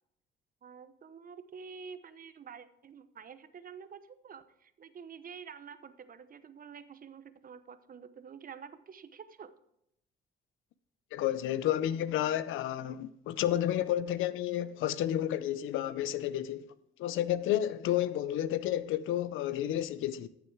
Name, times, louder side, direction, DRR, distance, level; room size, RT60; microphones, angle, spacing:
voice 1, 0.6-9.5, right 6 dB, 45° right, 0.9 m, -48 dB
voice 2, 11.1-16.7 17.0-20.3, left 12 dB, 85° left, 0.6 m, -31 dB
13.5 x 6.8 x 4.7 m
cardioid pair, 90°, 20 cm